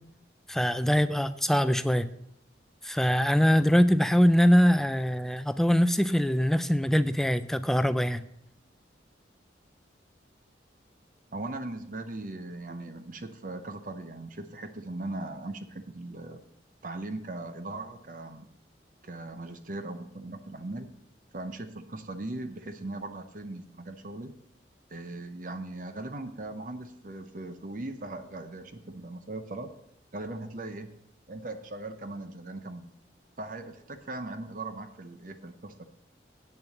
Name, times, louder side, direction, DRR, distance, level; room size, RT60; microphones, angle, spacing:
voice 1, 0.5-2.1 2.8-8.2, equal, ahead, 12 dB, 0.4 m, -23 dB
voice 2, 11.3-16.4 16.8-18.5 19.0-20.9 21.3-24.3 24.9-29.7 30.1-31.0 31.3-32.9 33.4-35.8, right 2 dB, 45° right, 8 dB, 0.7 m, -39 dB
8.5 x 6.7 x 7.2 m, 0.77 s
head